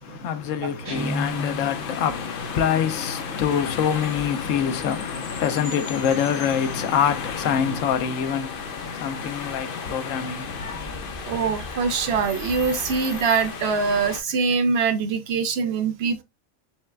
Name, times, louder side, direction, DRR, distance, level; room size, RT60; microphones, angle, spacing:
voice 1, 0.0-11.2, left 8 dB, 90° left, 1.0 m, -25 dB
Guitar, 0.8-2.0, left 1 dB, 20° right, 1.1 m, -30 dB
sound 1, 0.9-14.2, left 5 dB, 50° left, 0.8 m, -35 dB
Chime, 3.8-7.5, left 1 dB, 30° left, 1.7 m, -44 dB
voice 2, 11.3-16.2, right 5 dB, 65° right, 0.7 m, -23 dB
4.6 x 3.2 x 2.3 m
omnidirectional pair, 1.3 m